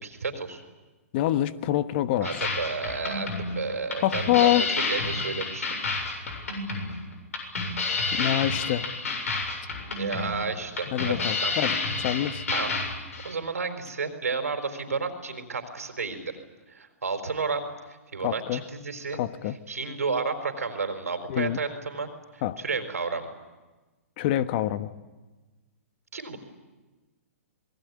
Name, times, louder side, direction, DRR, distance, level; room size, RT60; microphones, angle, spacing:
voice 1, 0.0-0.6 2.2-4.6 4.9-5.9 10.0-11.1 11.4-11.5 12.5-12.7 13.2-16.3 16.7-19.2 19.7-23.2 26.1-26.4, right 4 dB, 85° right, 7 dB, 4.5 m, -32 dB
voice 2, 1.1-2.5 4.0-4.7 8.2-8.9 10.9-12.4 18.2-18.6 19.1-19.6 21.3-21.6 22.4-22.6 24.2-24.9, left 13 dB, 45° left, 12 dB, 1.3 m, -26 dB
sound 1, 2.2-13.3, left 3 dB, 75° left, 7.4 m, -30 dB
27.0 x 20.5 x 9.6 m, 1.2 s
hypercardioid pair, 130°, 8 cm